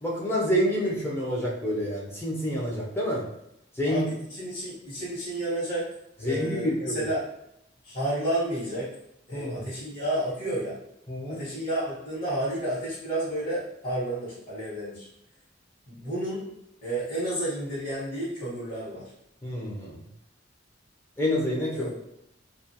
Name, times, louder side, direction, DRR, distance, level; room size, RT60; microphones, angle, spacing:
voice 1, 0.0-3.2 3.8-4.1 6.2-7.0 9.3-9.6 11.1-11.4 19.4-20.0 21.2-21.9, equal, 10° left, -4 dB, 0.4 m, -28 dB
voice 2, 3.8-5.9 6.2-7.2 7.8-8.9 9.3-10.8 11.3-15.1 15.9-16.5 16.8-19.0 21.7-21.9, right 1 dB, 45° left, -13 dB, 1.0 m, -31 dB
2.3 x 2.2 x 2.7 m, 0.78 s
head